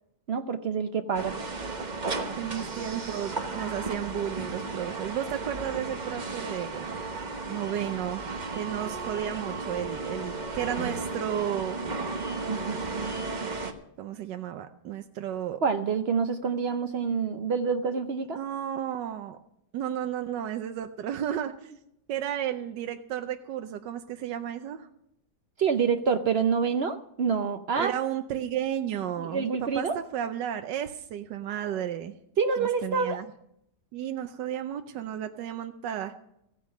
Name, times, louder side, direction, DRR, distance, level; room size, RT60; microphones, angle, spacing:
voice 1, 0.3-1.4 15.6-18.4 25.6-27.9 29.2-30.0 32.4-33.2, right 5 dB, 65° right, 8 dB, 0.6 m, -27 dB
sound 1, 1.1-13.7, right 3 dB, 30° right, 0.9 m, -34 dB
voice 2, 2.4-7.0 7.4-8.2 8.5-11.8 13.4-13.6 14.0-15.6 18.4-19.4 19.7-21.7 22.1-24.9 27.7-32.2 32.6-33.3 33.9-36.1, right 10 dB, 85° right, 7 dB, 1.4 m, -33 dB
15.0 x 9.4 x 6.5 m, 0.76 s
omnidirectional pair, 1.9 m